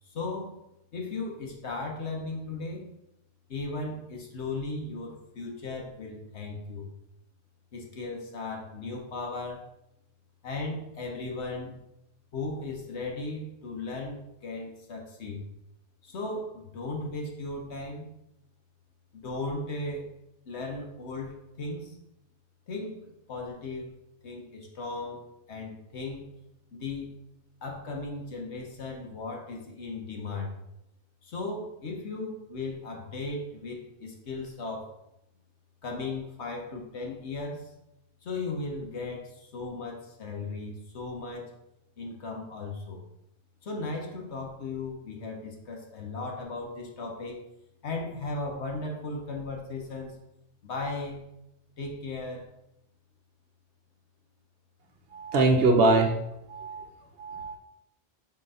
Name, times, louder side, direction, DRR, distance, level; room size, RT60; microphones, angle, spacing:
voice 1, 0.1-0.6 0.9-2.8 3.5-6.9 7.7-9.6 10.4-11.8 12.3-15.4 16.0-18.1 19.1-20.1 20.5-22.0 22.7-23.9 24.2-26.3 26.7-27.1 27.6-30.5 31.2-34.9 35.8-37.7 38.2-41.5 42.0-43.0 43.6-47.4 47.8-50.1 50.6-51.3 51.8-52.5, left 3 dB, 80° left, 0 dB, 1.4 m, -36 dB
voice 2, 55.1-56.1 56.5-56.8 57.2-57.5, right 2 dB, 65° right, 4 dB, 1.0 m, -22 dB
4.5 x 3.8 x 5.5 m, 0.85 s
omnidirectional pair, 1.1 m